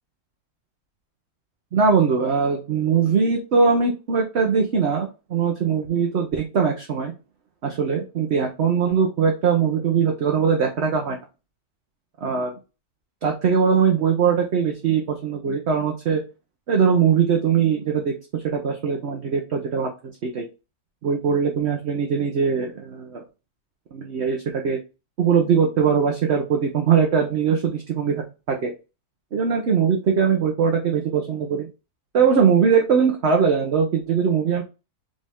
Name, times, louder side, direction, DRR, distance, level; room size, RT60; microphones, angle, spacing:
voice 1, 1.7-7.1 7.6-11.2 12.2-12.5 13.2-16.2 16.7-19.9 20.2-20.5 21.0-23.2 23.9-24.8 25.2-28.7 29.3-31.7 32.1-34.6, right 6 dB, 50° right, 1 dB, 1.0 m, -21 dB
5.3 x 2.6 x 3.5 m, 0.29 s
omnidirectional pair, 1.6 m